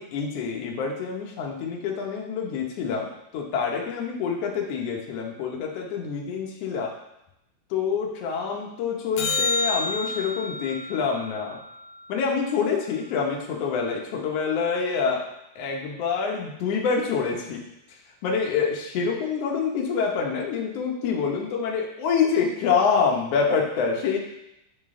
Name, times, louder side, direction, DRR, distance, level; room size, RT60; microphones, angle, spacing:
voice 1, 0.0-6.9 7.7-11.6 12.1-15.2 15.5-17.6 18.2-24.2, left 5 dB, 65° left, 0 dB, 1.6 m, -26 dB
sound 1, 9.2-13.6 20.2-20.3, left 3 dB, 80° left, 2.1 m, -31 dB
8.7 x 3.7 x 3.7 m, 0.85 s
omnidirectional pair, 3.8 m